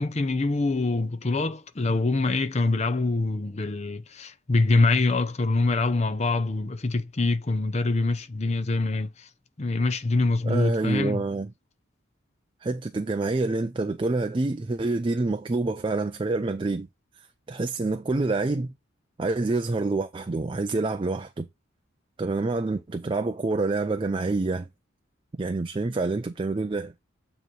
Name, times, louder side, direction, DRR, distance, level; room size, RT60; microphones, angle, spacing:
voice 1, 0.0-9.3 9.6-11.2, left 3 dB, 35° left, 0.6 m, -25 dB
voice 2, 10.4-11.5 12.6-16.9 17.2-18.7 19.2-21.5 22.2-24.7 25.4-26.9, right 3 dB, 25° right, 0.4 m, -27 dB
9.1 x 3.1 x 4.7 m
head